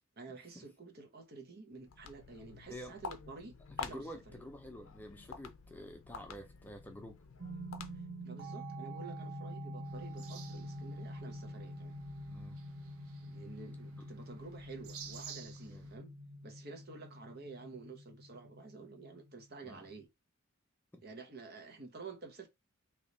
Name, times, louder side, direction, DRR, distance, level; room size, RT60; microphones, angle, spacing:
voice 1, 0.2-4.4 8.2-12.0 13.2-16.1 16.4-20.1 21.0-22.5, right 4 dB, 45° right, 0.8 m, -50 dB
Walk footsteps, 1.7-8.3, left 5 dB, 70° left, 0.6 m, -48 dB
voice 2, 3.8-7.2 12.3-12.6 15.7-15.9 19.6-19.9 20.9-21.0, equal, 10° left, 0.5 m, -49 dB
sound 1, 7.4-20.0, equal, 65° right, 1.2 m, -46 dB
sound 2, 9.8-16.0, right 7 dB, 80° right, 0.7 m, -54 dB
3.5 x 2.9 x 3.9 m
head